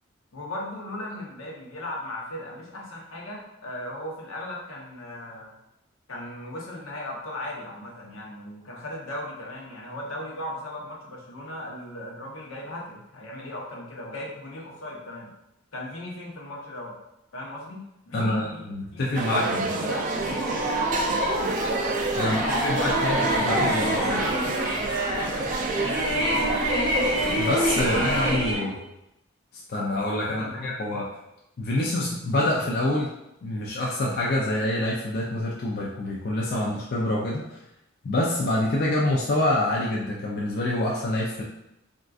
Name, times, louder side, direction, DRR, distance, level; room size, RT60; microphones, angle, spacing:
voice 1, 0.3-5.5 6.1-15.3 15.7-16.9 17.3-20.7 22.2-25.6 26.2-26.5 27.8-28.9 30.3-30.7, left 1 dB, 80° left, -2 dB, 0.8 m, -37 dB
voice 2, 18.1-19.8 22.1-24.2 27.4-28.7 29.7-31.1 31.6-33.1 33.4-37.6 38.0-41.4, left 1 dB, 50° left, -4 dB, 0.4 m, -26 dB
sound 1, 19.1-28.3, right 3 dB, 40° right, 0.3 m, -29 dB
sound 2, 20.1-28.5, equal, 20° right, 0.7 m, -27 dB
3.6 x 2.4 x 2.3 m, 0.85 s
head